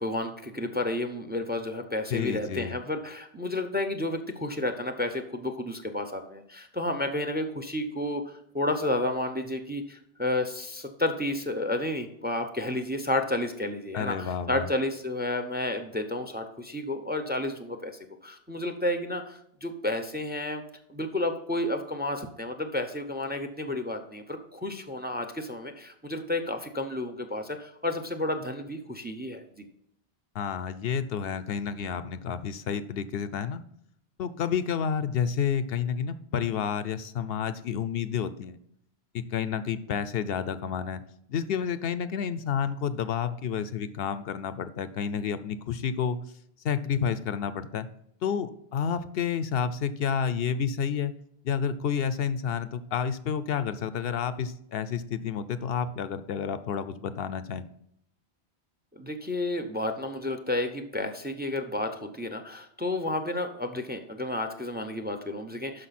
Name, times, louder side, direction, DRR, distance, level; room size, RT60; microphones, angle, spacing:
voice 1, 0.0-17.9 18.2-20.6 20.9-29.6 58.9-65.9, left 1 dB, 10° right, 7 dB, 0.6 m, -31 dB
voice 2, 2.1-2.7 13.9-14.7 30.3-33.6 34.2-38.6 39.1-41.0 41.3-46.2 46.6-47.9 48.2-51.1 51.4-57.7, left 7 dB, 70° left, 13 dB, 0.8 m, -30 dB
12.0 x 5.0 x 4.2 m, 0.72 s
omnidirectional pair, 1.1 m